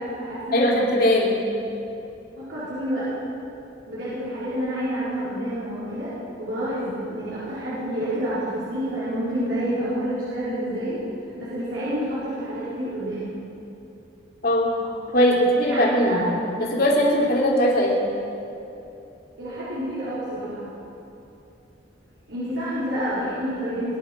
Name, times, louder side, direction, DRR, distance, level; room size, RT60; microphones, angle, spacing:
voice 1, 0.0-0.8 2.4-3.1 3.9-6.1 6.4-11.0 11.4-13.3 15.7-16.2 19.4-20.7 22.3-24.0, equal, 85° right, -12 dB, 5.0 m, -28 dB
voice 2, 0.5-1.4 14.4-14.7 15.1-16.2 16.6-18.0, equal, 55° left, -3 dB, 3.2 m, -19 dB
21.0 x 11.0 x 6.2 m, 2.9 s
head